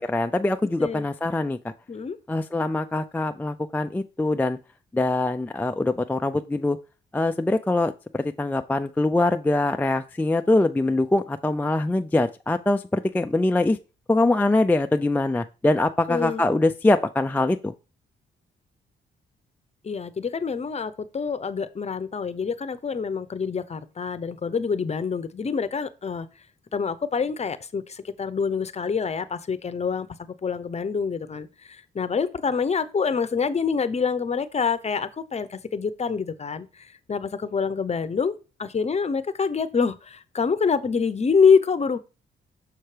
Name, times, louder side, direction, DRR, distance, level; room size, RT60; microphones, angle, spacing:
voice 1, 0.0-1.7 2.3-4.6 4.9-6.8 7.1-13.8 14.1-17.7, left 2 dB, 10° left, 0.3 m, -23 dB
voice 2, 16.1-16.4 19.8-26.3 26.7-36.7 37.1-38.3 38.6-42.0, left 5 dB, 35° left, 0.7 m, -26 dB
6.5 x 5.7 x 3.3 m
cardioid pair, 75°, 19 cm